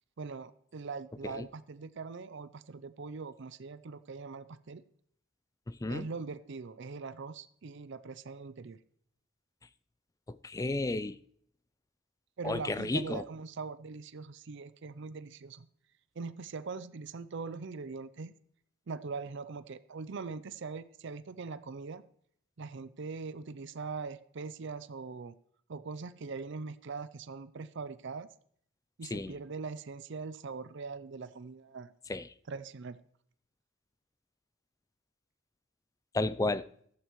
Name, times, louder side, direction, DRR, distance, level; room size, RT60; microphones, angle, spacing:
voice 1, 0.2-4.8 5.9-8.8 12.4-15.7 16.2-18.3 18.9-22.0 22.6-25.4 25.7-28.3 29.0-31.9 32.5-33.0, right 4 dB, 60° right, 0.5 m, -41 dB
voice 2, 5.7-6.1 10.4-11.2 12.4-13.2 29.1-29.3 32.1-32.3 36.1-36.6, left 2 dB, 15° left, 0.3 m, -32 dB
14.5 x 12.5 x 3.1 m
head